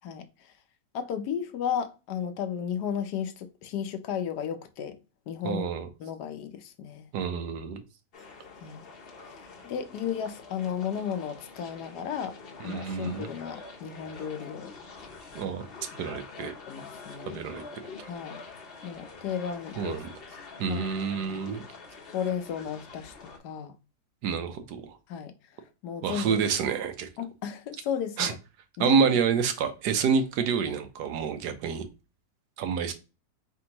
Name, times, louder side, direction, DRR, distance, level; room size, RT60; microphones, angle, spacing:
voice 1, 0.0-0.5 0.9-5.0 5.3-5.7 6.0-7.1 8.6-8.9 9.2-12.4 12.6-14.7 15.4-15.6 16.6-17.4 18.0-18.4 18.8-20.0 20.7-21.4 22.1-23.8 25.1-26.4 27.2-28.4 28.8-29.2, left 8 dB, 75° left, 1.2 m, -34 dB
voice 2, 5.4-5.9 7.1-7.8 12.6-13.3 15.3-15.7 16.0-16.5 17.3-17.6 18.0-18.1 19.8-20.1 20.6-21.6 24.2-25.0 26.0-27.1 28.2-28.3 28.8-31.9 32.6-32.9, right 6 dB, 75° right, 1.2 m, -28 dB
sound 1, 8.1-23.4, left 4 dB, 45° left, 0.8 m, -46 dB
4.5 x 3.5 x 2.9 m
omnidirectional pair, 1.8 m